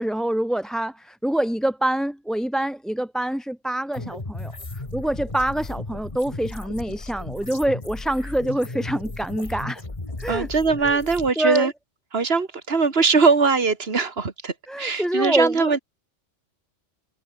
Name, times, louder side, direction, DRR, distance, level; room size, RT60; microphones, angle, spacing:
voice 1, 0.0-9.8 10.2-10.5 10.8-11.0 11.4-11.7 14.7-15.8, right 1 dB, ahead, 0.9 m, -26 dB
sound 1, 3.9-11.3, left 2 dB, 25° left, 2.0 m, -35 dB
voice 2, 10.3-11.7 12.1-15.8, right 4 dB, 55° right, 2.5 m, -21 dB
omnidirectional pair, 1.2 m